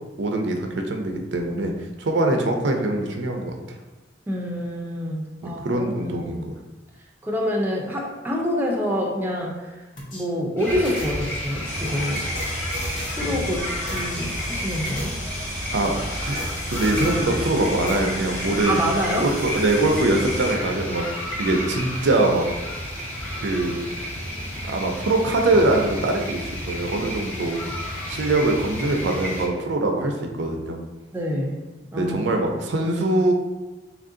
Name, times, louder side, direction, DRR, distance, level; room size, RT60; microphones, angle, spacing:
voice 1, 0.2-1.7 2.0-3.6 5.4-6.5 15.7-15.9 16.2-16.4 16.7-18.8 19.2-21.1 21.4-22.4 23.4-23.9 24.6-27.6 28.1-30.8 31.9-33.3, right 2 dB, 75° right, 3 dB, 0.5 m, -23 dB
voice 2, 4.3-6.4 7.2-9.8 10.1-12.3 13.1-15.2 18.7-19.4 31.1-31.6 31.9-32.3, equal, 10° right, -1 dB, 0.4 m, -27 dB
sound 1, 10.0-10.2 10.8-13.5 13.9-14.2 14.7-17.5 17.9-18.0, equal, 80° left, 0.9 m, -35 dB
sound 2, 10.6-29.5, equal, 10° left, 0.9 m, -31 dB
sound 3, 11.6-20.5, left 1 dB, 45° left, 1.0 m, -36 dB
3.0 x 2.6 x 3.7 m, 1.1 s
head